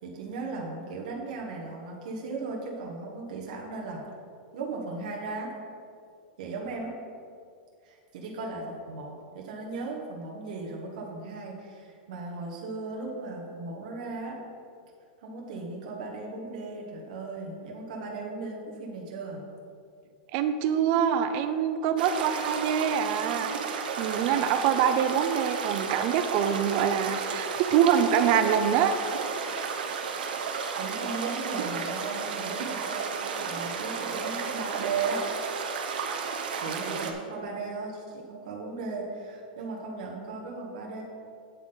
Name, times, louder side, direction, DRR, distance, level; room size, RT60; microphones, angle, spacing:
voice 1, 0.0-4.0 4.5-5.5 6.4-7.0 7.8-14.4 15.2-19.4 30.8-35.3 36.6-41.0, right 3 dB, 50° right, -1 dB, 1.3 m, -36 dB
voice 2, 20.3-28.9, right 8 dB, 30° right, 9 dB, 0.4 m, -25 dB
sound 1, 22.0-37.1, right 5 dB, 75° right, 1.0 m, -33 dB
8.4 x 8.2 x 3.9 m, 2.3 s
supercardioid pair, 180°, 5 cm